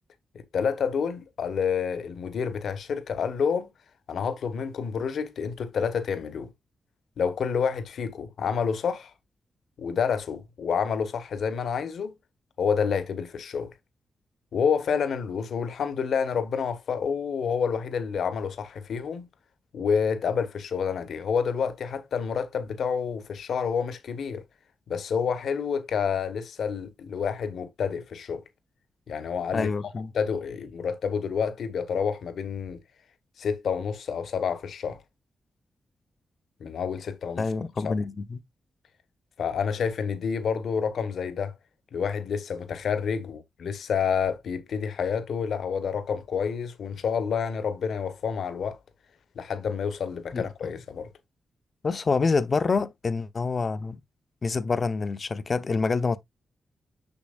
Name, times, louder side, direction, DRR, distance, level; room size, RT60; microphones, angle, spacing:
voice 1, 0.5-3.7 4.1-6.5 7.2-9.1 9.8-12.2 12.6-13.7 14.5-19.3 19.7-24.4 24.9-28.4 29.1-29.7 30.1-32.8 33.4-35.0 36.6-37.5 37.8-37.9 39.4-41.6 41.9-48.8 49.3-51.1, left 6 dB, 75° left, 1.1 m, -28 dB
voice 2, 29.5-30.1 37.4-38.4 50.3-50.7 51.8-54.0 54.4-56.2, left 4 dB, 45° left, 0.7 m, -27 dB
7.1 x 5.9 x 2.4 m
cardioid pair, 70°, 0 cm